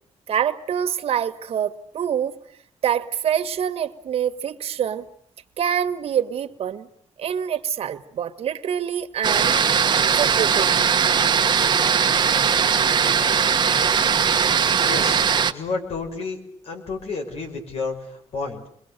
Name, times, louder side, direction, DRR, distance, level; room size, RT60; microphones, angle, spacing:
voice 1, 0.3-2.4 2.8-5.1 5.6-6.9 7.2-9.6 10.2-10.9, right 9 dB, 65° right, 1.6 m, -25 dB
sound 1, 9.2-15.5, right 7 dB, 40° right, 1.3 m, -19 dB
voice 2, 14.8-16.4 16.6-18.7, left 4 dB, 65° left, 6.0 m, -31 dB
29.0 x 22.5 x 6.8 m
cardioid pair, 140°, 11 cm